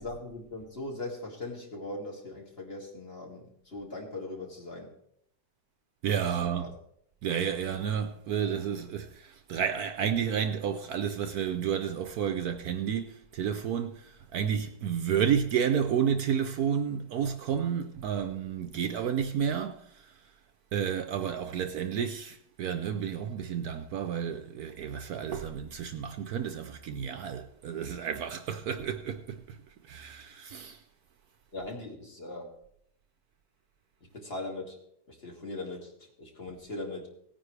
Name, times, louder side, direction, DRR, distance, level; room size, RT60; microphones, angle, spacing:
voice 1, 0.0-4.9 6.6-6.7 20.9-21.1 31.5-32.5 34.0-34.8 35.1-37.1, left 2 dB, 35° left, 2.4 m, -40 dB
voice 2, 6.0-6.7 7.2-20.1 20.7-29.6 29.8-30.8, right 8 dB, 70° right, 1.1 m, -31 dB
17.5 x 9.5 x 3.3 m
omnidirectional pair, 1.9 m